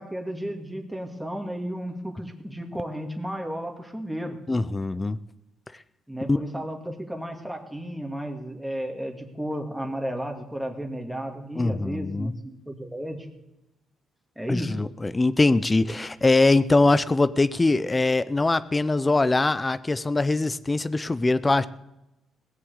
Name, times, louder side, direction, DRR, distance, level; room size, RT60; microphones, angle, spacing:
voice 1, 0.0-4.4 6.1-12.3 12.7-13.3 14.4-14.7, equal, 5° right, 2 dB, 2.2 m, -33 dB
voice 2, 4.5-5.2 6.3-6.4 11.6-12.3 14.5-21.7, left 2 dB, 20° left, 16 dB, 0.5 m, -22 dB
17.5 x 7.5 x 8.0 m, 0.93 s
cardioid pair, 90°, 0 cm